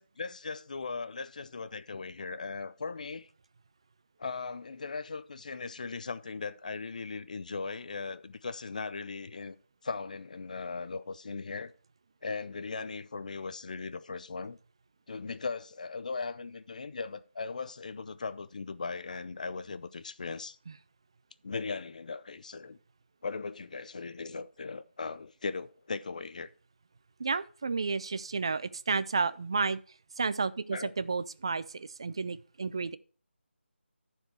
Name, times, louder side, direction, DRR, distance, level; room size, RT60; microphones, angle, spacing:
voice 1, 0.0-3.3 4.2-9.6 9.8-11.7 12.2-14.6 15.1-20.6 21.4-22.8 23.2-26.5 30.7-30.9, left 4 dB, 40° left, 0.5 m, -38 dB
voice 2, 27.2-29.8 30.2-33.0, right 4 dB, 25° right, 0.3 m, -31 dB
13.5 x 4.6 x 4.7 m
figure-of-eight pair, 170°, 7 cm